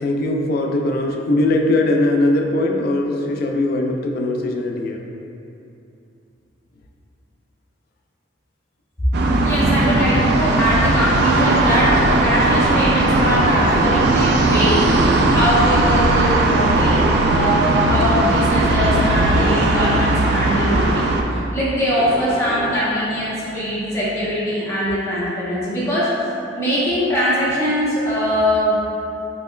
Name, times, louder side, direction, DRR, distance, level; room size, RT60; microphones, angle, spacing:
voice 1, 0.0-5.0, left 1 dB, 55° left, 2 dB, 0.3 m, -20 dB
sound 1, 9.1-21.2, right 2 dB, 60° right, 0.3 m, -17 dB
voice 2, 9.4-14.9 15.3-26.2 26.5-29.0, equal, 15° left, -11 dB, 0.9 m, -21 dB
sound 2, 16.7-24.3, equal, 35° right, 0.7 m, -31 dB
4.3 x 3.0 x 2.2 m, 2.7 s
head